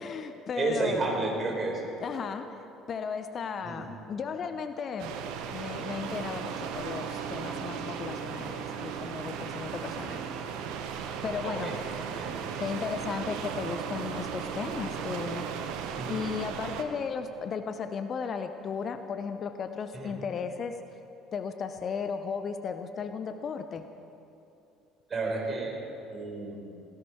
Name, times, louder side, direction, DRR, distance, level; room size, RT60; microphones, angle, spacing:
voice 1, 0.0-1.0 2.0-2.5 2.9-5.2 5.5-10.2 11.2-11.7 12.6-15.5 16.1-20.8 21.3-23.9, left 6 dB, 40° left, 9 dB, 0.7 m, -35 dB
voice 2, 0.5-1.8 3.6-3.9 11.4-11.7 12.1-12.4 15.9-16.2 19.9-20.1 25.1-25.8 26.1-26.6, right 3 dB, 35° right, 0 dB, 4.3 m, -31 dB
sound 1, 5.0-16.8, right 7 dB, 60° right, 1.0 m, -36 dB
17.0 x 15.5 x 4.7 m, 2.7 s
figure-of-eight pair, 55°, 0 cm